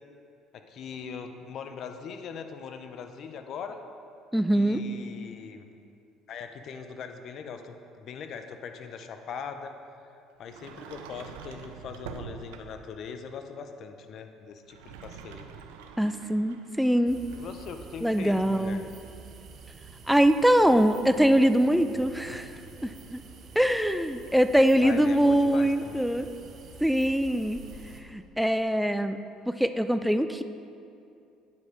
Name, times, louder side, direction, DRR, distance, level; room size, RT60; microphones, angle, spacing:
voice 1, 0.5-3.8 4.5-5.6 6.3-9.8 10.4-15.5 17.3-18.8 24.8-26.3, left 6 dB, 55° left, 7 dB, 0.6 m, -41 dB
voice 2, 4.3-4.8 16.0-17.2 18.0-18.8 20.1-22.5 22.8-23.2 23.6-26.3 26.8-27.6 28.1-29.2 29.5-30.4, equal, ahead, 10 dB, 0.4 m, -23 dB
Sliding door, 10.4-12.9 14.6-17.8, right 7 dB, 90° right, 0.4 m, -45 dB
sound 1, 17.1-28.0, right 4 dB, 50° right, 0.8 m, -48 dB
9.2 x 5.1 x 4.8 m, 2.6 s
supercardioid pair, 85°, 0 cm